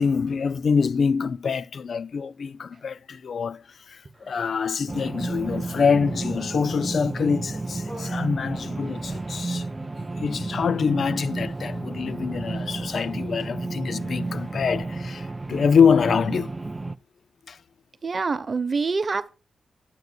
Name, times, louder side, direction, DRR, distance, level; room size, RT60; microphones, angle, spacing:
voice 1, 0.0-9.7 10.2-16.5 17.5-17.6, left 6 dB, 60° left, 0.4 m, -25 dB
Human voice, 4.0-4.6 5.2-7.0 7.4-9.4 9.7-10.1 10.4-10.6 11.1-14.8, equal, 15° left, 4.8 m, -51 dB
sound 1, 4.9-17.0, right 3 dB, 20° right, 0.4 m, -32 dB
voice 2, 18.0-19.4, right 4 dB, 40° right, 0.9 m, -26 dB
12.0 x 7.9 x 2.3 m
wide cardioid pair, 120°, 0 cm